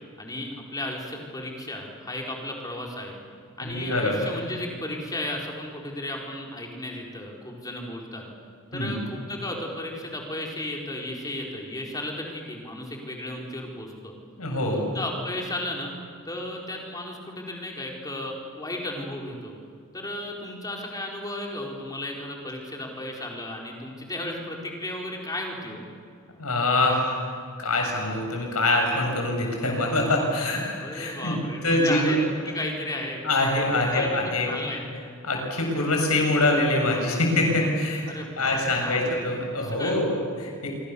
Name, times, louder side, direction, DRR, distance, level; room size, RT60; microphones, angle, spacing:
voice 1, 0.2-3.1 3.6-8.3 8.7-14.1 14.7-15.9 16.2-19.5 19.9-25.8 30.8-32.2 32.5-33.2 33.9-34.8 38.1-40.1, left 1 dB, 15° left, 0 dB, 4.5 m, -34 dB
voice 2, 3.6-4.2 8.7-9.0 14.4-14.8 26.4-27.2 27.6-32.2 33.2-34.6 35.2-38.0 38.4-40.7, left 2 dB, 80° left, 1 dB, 7.3 m, -24 dB
27.0 x 25.0 x 7.1 m, 2.3 s
head